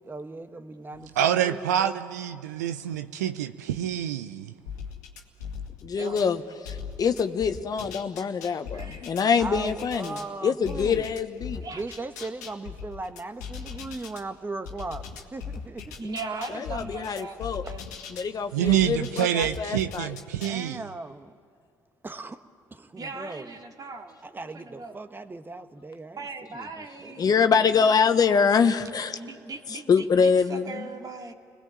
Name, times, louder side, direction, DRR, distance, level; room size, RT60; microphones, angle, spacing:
voice 1, 0.0-2.0 9.4-11.0 11.7-15.8 20.4-21.3 22.0-22.4 22.7-23.5 24.2-26.2 26.6-27.4, right 3 dB, 25° right, 9 dB, 1.6 m, -38 dB
voice 2, 1.2-4.4 18.5-20.9, right 10 dB, 90° right, 10 dB, 0.6 m, -26 dB
sound 1, 4.7-6.3 6.6-10.3 10.6-14.2 14.6-18.3 18.6-20.6, left 6 dB, 90° left, 2.0 m, -39 dB
voice 3, 5.8-11.6 16.5-17.6 18.1-20.2 27.2-29.2 29.9-30.9, left 6 dB, 45° left, 9 dB, 1.3 m, -24 dB
voice 4, 8.7-9.1 11.6-12.0 13.7-13.8 16.0-17.9 23.0-25.0 26.2-27.9 29.1-31.3, right 3 dB, 45° right, 3 dB, 2.7 m, -39 dB
29.5 x 21.0 x 8.9 m, 2.2 s
hypercardioid pair, 55°, 9 cm